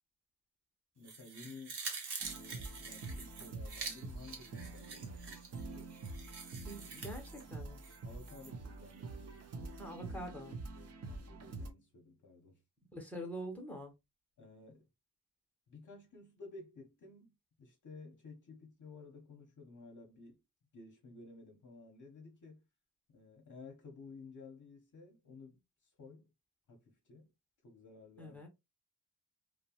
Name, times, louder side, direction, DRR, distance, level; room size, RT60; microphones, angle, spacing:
voice 1, 1.0-1.8 2.3-6.0 8.0-9.8 10.7-12.6 14.4-14.9 15.7-20.4 20.7-22.7 23.1-26.3 26.7-27.3 27.6-28.4, left 3 dB, 50° left, 0.7 m, -54 dB
sound 1, 1.0-8.5 8.9-9.0, right 5 dB, 85° right, 0.9 m, -47 dB
sound 2, 2.2-11.7, right 3 dB, 40° right, 0.5 m, -46 dB
voice 2, 6.7-7.8 9.8-10.6 12.9-13.9 28.2-28.5, equal, 5° left, 0.7 m, -45 dB
2.7 x 2.0 x 2.7 m
wide cardioid pair, 175°, 39 cm